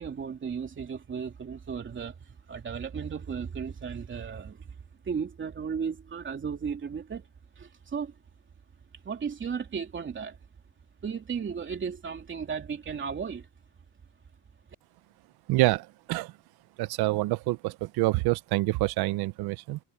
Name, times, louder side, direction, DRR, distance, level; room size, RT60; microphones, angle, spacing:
voice 1, 0.0-4.8 5.0-7.3 7.6-8.2 9.0-10.4 11.0-13.5, right 6 dB, 30° right, 3.1 m, -35 dB
voice 2, 15.5-16.3 16.8-19.8, right 20 dB, 80° right, 0.8 m, -27 dB
cardioid pair, 145°, 38 cm